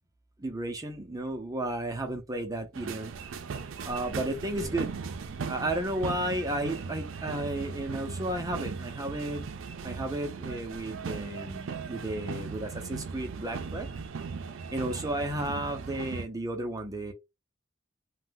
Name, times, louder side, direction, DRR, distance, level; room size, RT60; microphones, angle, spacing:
voice 1, 0.4-3.1 3.8-4.9 5.5-9.5 9.8-13.9 14.7-17.1, right 1 dB, 20° right, 0.5 m, -33 dB
sound 1, 2.7-16.3, right 5 dB, 85° right, 0.4 m, -38 dB
2.6 x 2.1 x 3.6 m
head